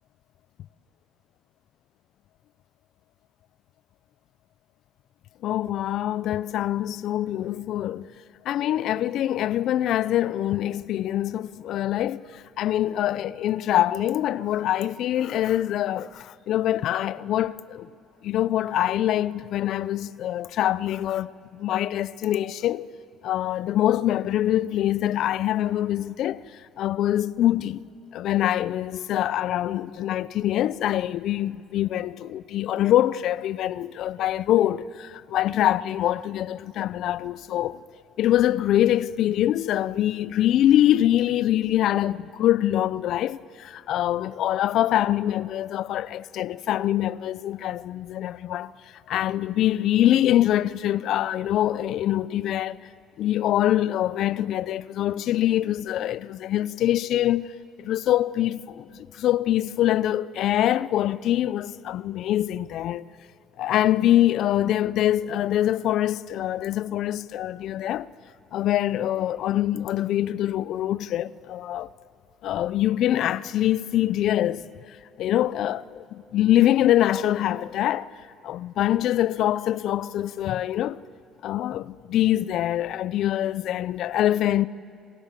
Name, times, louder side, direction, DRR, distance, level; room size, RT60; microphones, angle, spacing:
voice 1, 5.4-8.1 8.4-17.9 18.2-22.9 23.2-26.4 26.8-27.8 28.1-37.8 38.2-48.7 49.1-52.8 53.2-57.5 57.8-63.0 63.6-68.1 68.5-71.9 72.4-74.6 75.2-78.1 78.4-81.0 81.4-84.7, left 12 dB, 65° left, 0.7 m, -24 dB
28.5 x 27.5 x 7.6 m
supercardioid pair, 80°, 0 cm